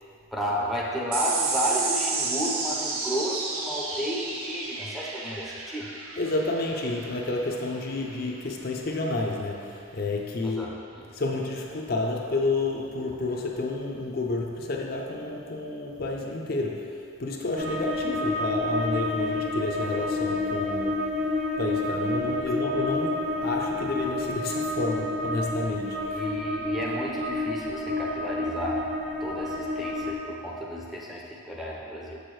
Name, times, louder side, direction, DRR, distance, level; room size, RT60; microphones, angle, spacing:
voice 1, 0.3-5.9 10.4-11.1 26.1-28.9 29.2-32.2, equal, ahead, -4 dB, 0.6 m, -32 dB
sound 1, 1.1-7.9, right 4 dB, 85° right, 0.7 m, -32 dB
voice 2, 6.2-10.8 11.1-21.2 21.6-26.2, left 2 dB, 45° left, 0 dB, 0.5 m, -30 dB
sound 2, 17.6-30.2, left 2 dB, 50° right, 1.1 m, -29 dB
6.9 x 6.2 x 3.2 m, 2.5 s
head